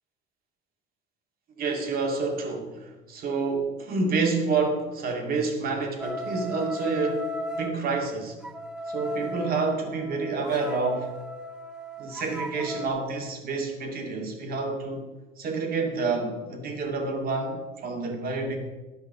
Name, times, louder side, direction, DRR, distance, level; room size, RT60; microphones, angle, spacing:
voice 1, 1.5-8.4 8.9-11.2 12.0-15.1 15.4-18.6, right 4 dB, 60° right, 3 dB, 2.3 m, -28 dB
sound 1, 6.0-7.7 8.4-12.9, equal, 5° right, 1.0 m, -36 dB
11.5 x 5.8 x 6.7 m, 1.1 s
cardioid pair, 110°, 17 cm